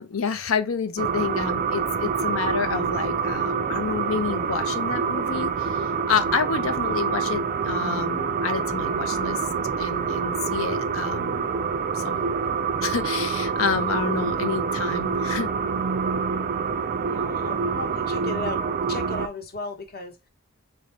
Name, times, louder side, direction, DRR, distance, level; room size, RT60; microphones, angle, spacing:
voice 1, 0.0-9.4 9.8-11.5 11.9-12.4 12.8-15.5, left 6 dB, 75° left, 0.6 m, -29 dB
sound 1, 1.0-19.3, right 5 dB, 40° right, 0.4 m, -26 dB
voice 2, 16.0-16.5 17.0-20.3, left 2 dB, 50° left, 0.9 m, -36 dB
4.3 x 2.6 x 3.1 m
head